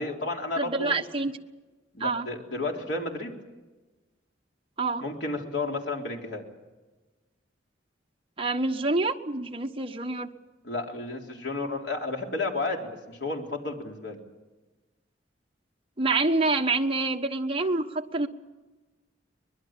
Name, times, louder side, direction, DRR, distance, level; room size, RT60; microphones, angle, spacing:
voice 1, 0.0-1.0 1.9-3.4 5.0-6.4 10.6-14.2, left 2 dB, 65° left, 1 dB, 3.8 m, -32 dB
voice 2, 0.6-1.3 2.0-2.3 4.8-5.0 8.4-10.3 16.0-18.3, right 3 dB, 30° right, 3 dB, 1.2 m, -27 dB
24.0 x 21.0 x 7.4 m, 1.2 s
head